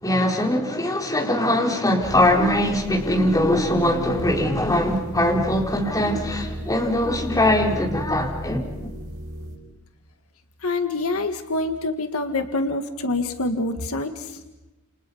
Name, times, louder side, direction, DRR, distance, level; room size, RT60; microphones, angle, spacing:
voice 1, 0.0-8.9, left 1 dB, 15° left, 0 dB, 4.4 m, -21 dB
sound 1, 2.0-9.6, right 1 dB, 65° right, 5.6 m, -35 dB
voice 2, 10.6-14.4, left 2 dB, 70° left, 6 dB, 1.8 m, -26 dB
30.0 x 29.5 x 5.6 m, 1.0 s
head